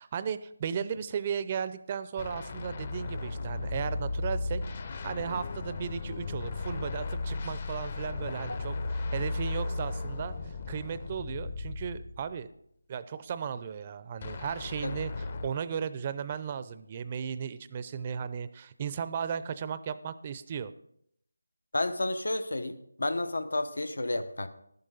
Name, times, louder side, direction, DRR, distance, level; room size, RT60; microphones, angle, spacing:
voice 1, 0.0-4.6 5.0-12.5 12.9-20.7, right 7 dB, 25° right, 14 dB, 0.5 m, -35 dB
sound 1, 2.2-12.4 14.2-15.5, left 3 dB, 35° left, 0.8 m, -35 dB
voice 2, 21.7-22.7 23.0-24.5, left 2 dB, 75° left, 10 dB, 1.1 m, -31 dB
11.0 x 10.5 x 3.9 m, 0.70 s
figure-of-eight pair, 165°, 0 cm